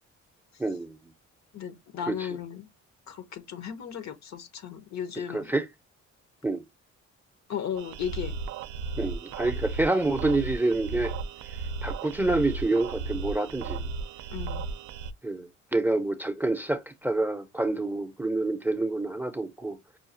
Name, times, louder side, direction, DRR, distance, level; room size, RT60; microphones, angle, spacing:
voice 1, 0.6-1.0 2.1-2.3 5.3-5.7 6.4-6.6 9.0-11.1 11.8-13.9 15.2-19.8, right 2 dB, 5° right, 0.6 m, -27 dB
voice 2, 1.5-2.7 3.1-5.5 7.5-8.3 14.3-14.7, left 8 dB, 65° left, 1.0 m, -35 dB
sound 1, 7.8-15.1, right 4 dB, 75° right, 0.5 m, -35 dB
5.6 x 2.3 x 2.6 m
cardioid pair, 90°, 30 cm